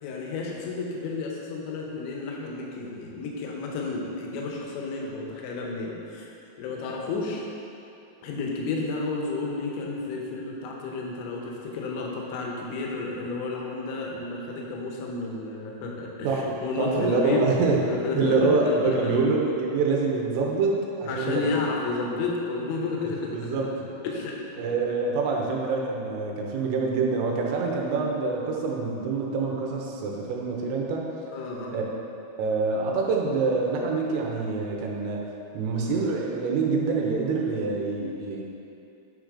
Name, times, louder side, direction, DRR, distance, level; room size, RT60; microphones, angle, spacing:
voice 1, 0.0-7.5 8.2-17.6 17.9-19.2 21.0-23.6 24.0-24.8 31.3-31.8, left 3 dB, 75° left, -1 dB, 3.0 m, -31 dB
voice 2, 16.2-17.8 18.2-21.6 23.3-23.7 24.6-31.1 31.7-31.8 32.4-35.2 35.5-38.4, right 4 dB, 90° right, -1 dB, 3.4 m, -26 dB
10.0 x 3.9 x 4.8 m, 2.7 s
omnidirectional pair, 5.7 m